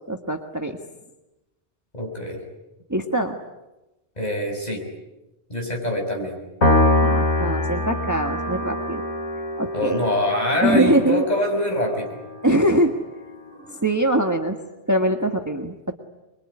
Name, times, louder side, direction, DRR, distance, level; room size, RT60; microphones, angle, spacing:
voice 1, 0.1-0.8 2.9-3.4 7.0-9.0 9.6-10.0 10.6-11.3 12.4-12.9 13.7-14.6 14.9-15.9, right 1 dB, 15° right, 4 dB, 1.6 m, -22 dB
voice 2, 1.9-2.4 4.2-4.8 5.5-6.4 9.7-12.2, left 1 dB, 35° left, 1 dB, 6.4 m, -24 dB
Piano, 6.6-13.2, left 1 dB, 75° left, 3.4 m, -24 dB
25.0 x 23.0 x 9.9 m, 1.0 s
omnidirectional pair, 1.2 m